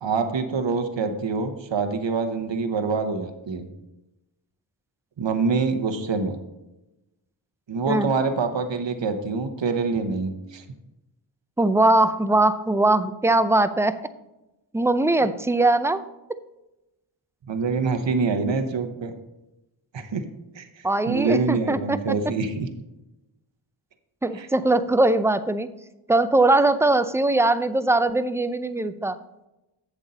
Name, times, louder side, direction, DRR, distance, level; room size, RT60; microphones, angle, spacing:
voice 1, 0.0-3.7 5.2-6.4 7.7-10.6 17.5-19.1 19.9-20.2 20.5-22.7 24.3-24.5, right 4 dB, 60° right, 7 dB, 1.0 m, -25 dB
voice 2, 11.6-14.0 14.7-16.0 20.8-22.0 24.2-25.7 26.1-29.2, right 2 dB, 5° right, 12 dB, 0.4 m, -21 dB
7.8 x 7.3 x 4.1 m, 0.96 s
cardioid pair, 45°, 49 cm